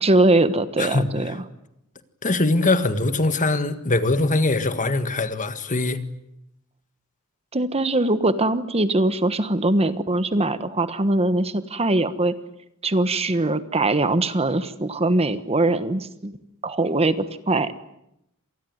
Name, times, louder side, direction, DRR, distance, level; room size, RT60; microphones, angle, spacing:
voice 1, 0.0-1.4 7.5-12.3 12.8-16.4 16.6-17.7, right 2 dB, 30° right, 1.2 m, -22 dB
voice 2, 0.8-1.1 2.2-6.0, left 2 dB, 35° left, 1.7 m, -22 dB
27.0 x 20.0 x 9.5 m
head